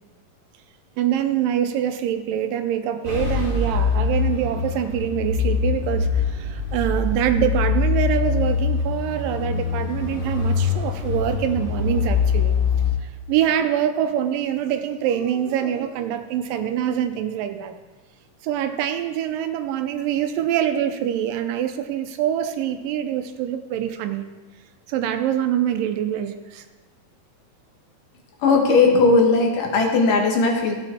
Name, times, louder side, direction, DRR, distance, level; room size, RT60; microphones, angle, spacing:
voice 1, 1.0-12.5 13.0-17.7 18.4-24.3 24.9-26.7, right 10 dB, 85° right, 8 dB, 2.3 m, -25 dB
sound 1, 3.0-12.9, left 5 dB, 25° left, 1.1 m, -23 dB
voice 2, 28.4-30.8, left 3 dB, 70° left, 2 dB, 2.8 m, -17 dB
15.0 x 8.0 x 4.3 m, 1.3 s
omnidirectional pair, 4.1 m